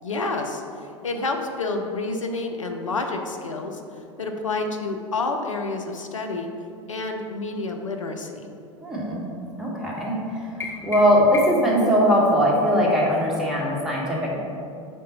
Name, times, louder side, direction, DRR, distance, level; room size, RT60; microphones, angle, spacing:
voice 1, 0.0-3.8 4.2-6.5 6.9-8.5, left 3 dB, 80° left, 3 dB, 0.6 m, -29 dB
voice 2, 8.8-9.3 9.6-10.5 10.8-14.4, equal, 5° right, -5 dB, 1.4 m, -20 dB
sound 1, 10.6-11.8, left 4 dB, 15° left, 1.0 m, -34 dB
5.3 x 3.8 x 5.4 m, 2.6 s
figure-of-eight pair, 85°, 16 cm